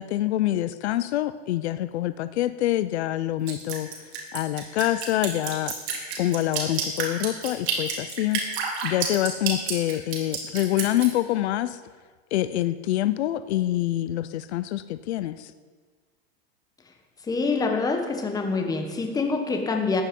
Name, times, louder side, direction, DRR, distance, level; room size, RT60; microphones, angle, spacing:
voice 1, 0.0-3.9 4.3-5.7 6.2-8.4 8.8-11.8 12.3-15.5, left 14 dB, 80° left, 14 dB, 0.7 m, -26 dB
Drip, 3.5-11.1, right 6 dB, 75° right, 3.4 m, -29 dB
voice 2, 17.3-20.0, left 4 dB, 10° left, 3 dB, 1.4 m, -25 dB
14.5 x 10.0 x 5.4 m, 1.5 s
supercardioid pair, 155°, 32 cm